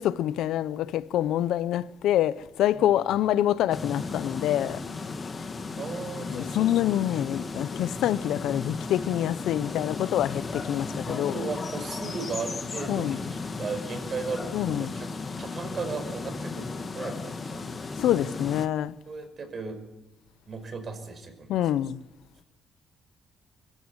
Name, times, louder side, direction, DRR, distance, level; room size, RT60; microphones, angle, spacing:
voice 1, 0.0-4.8 6.3-11.4 12.9-13.2 14.5-14.9 18.0-18.9 21.5-22.0, left 12 dB, 85° left, 0.7 m, -26 dB
sound 1, 3.7-18.7, left 4 dB, 35° left, 2.0 m, -35 dB
voice 2, 5.8-6.8 11.1-15.1 15.4-17.6 19.1-19.8 20.5-21.5, right 4 dB, 45° right, 5.4 m, -36 dB
23.0 x 15.0 x 9.7 m
cardioid pair, 90°, 0 cm